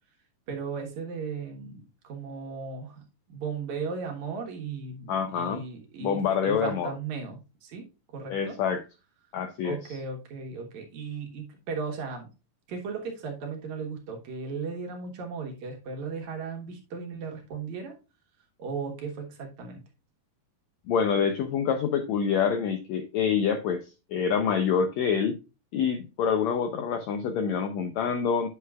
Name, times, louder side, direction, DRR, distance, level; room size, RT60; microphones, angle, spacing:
voice 1, 0.5-3.0 3.3-8.6 9.6-12.3 12.7-18.0 18.6-19.8, right 5 dB, 60° right, 2 dB, 2.5 m, -36 dB
voice 2, 5.1-5.6 6.0-6.9 8.3-8.8 9.3-9.8 20.9-25.4 25.7-28.5, left 7 dB, 90° left, 8 dB, 1.5 m, -26 dB
9.2 x 6.7 x 2.3 m, 0.29 s
omnidirectional pair, 4.1 m